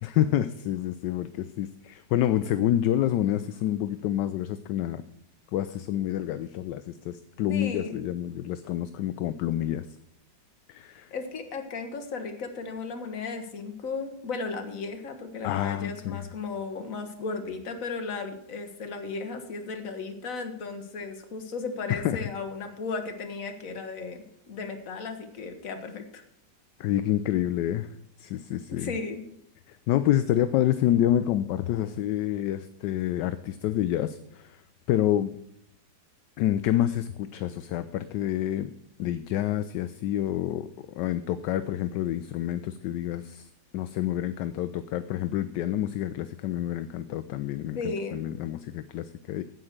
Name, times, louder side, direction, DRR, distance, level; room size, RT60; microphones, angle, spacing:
voice 1, 0.0-5.0 5.5-9.9 10.7-11.1 15.4-16.2 21.9-22.3 26.8-27.9 28.2-28.9 29.7-34.6 34.9-35.4 36.4-38.7 39.0-43.5 43.7-49.4, left 12 dB, 75° left, 12 dB, 1.1 m, -28 dB
voice 2, 7.5-8.0 11.1-26.2 28.7-29.2 47.7-48.2, left 4 dB, 50° left, 6 dB, 1.6 m, -35 dB
9.4 x 8.0 x 6.4 m, 0.75 s
omnidirectional pair, 2.0 m